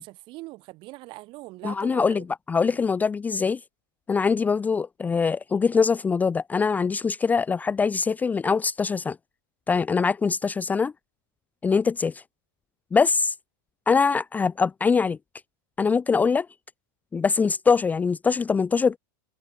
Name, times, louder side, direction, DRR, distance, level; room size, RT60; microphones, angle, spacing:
voice 1, 0.0-2.2 2.7-2.8, right 21 dB, 45° right, 6.8 m, -42 dB
voice 2, 1.6-3.6 4.1-9.2 9.7-10.9 11.6-12.2 12.9-13.3 13.9-15.2 15.8-16.5 17.1-19.0, left 5 dB, 15° left, 0.7 m, -23 dB
supercardioid pair, 135°, 11 cm